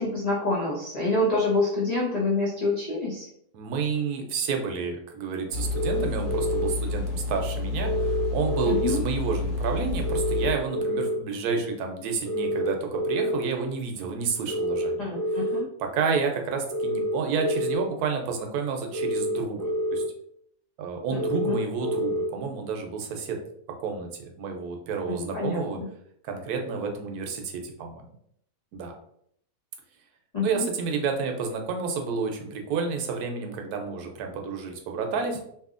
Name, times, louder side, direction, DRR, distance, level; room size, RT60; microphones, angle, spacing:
voice 1, 0.0-3.3 8.7-9.0 15.0-15.6 21.1-21.2 21.4-21.6 25.1-25.9 30.3-30.7, left 2 dB, 85° left, -5 dB, 0.3 m, -27 dB
voice 2, 3.5-15.1 15.8-20.0 20.8-23.4 23.8-25.8 26.2-28.0 28.7-28.9 30.4-35.4, right 5 dB, 80° right, 3 dB, 1.1 m, -30 dB
sound 1, 5.5-10.5, left 3 dB, 65° left, 0.9 m, -30 dB
sound 2, 5.7-6.7 7.8-8.9 10.0-11.2 12.2-13.4 14.5-15.6 16.7-17.8 18.9-20.0 21.1-22.3, equal, 10° left, 1.2 m, -28 dB
2.7 x 2.7 x 2.4 m, 0.71 s
omnidirectional pair, 1.6 m